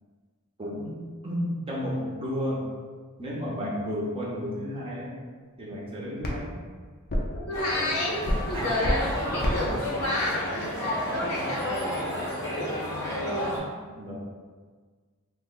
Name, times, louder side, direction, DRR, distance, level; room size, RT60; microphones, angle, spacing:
voice 1, 0.6-2.6 3.2-5.2 5.6-6.6 8.5-8.7 9.6-9.8 11.3-11.5 14.0-14.2, equal, 25° right, -5 dB, 0.7 m, -32 dB
sound 1, 5.3-11.6, equal, 45° left, 0.5 m, -33 dB
voice 2, 7.3-8.2 8.4-12.0 12.3-13.5, left 1 dB, 75° left, -4 dB, 0.8 m, -31 dB
sound 2, 7.5-13.6, equal, 15° left, 0.7 m, -32 dB
3.2 x 2.2 x 3.7 m, 1.5 s
head